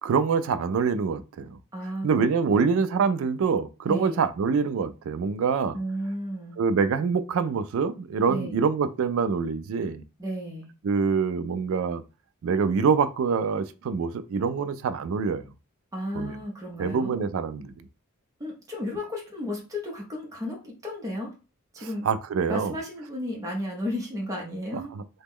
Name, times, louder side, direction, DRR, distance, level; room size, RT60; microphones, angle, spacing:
voice 1, 0.0-1.6 2.0-5.8 6.6-10.0 10.8-12.0 12.4-15.4 16.1-16.4 16.8-17.7 22.0-22.7, right 5 dB, 65° right, 0.3 m, -25 dB
voice 2, 1.7-2.8 3.9-4.2 5.7-6.6 8.3-8.6 10.2-10.7 15.9-17.2 18.4-21.3 21.7-22.1 22.5-24.9, left 1 dB, 15° right, 0.7 m, -33 dB
2.9 x 2.1 x 3.5 m
head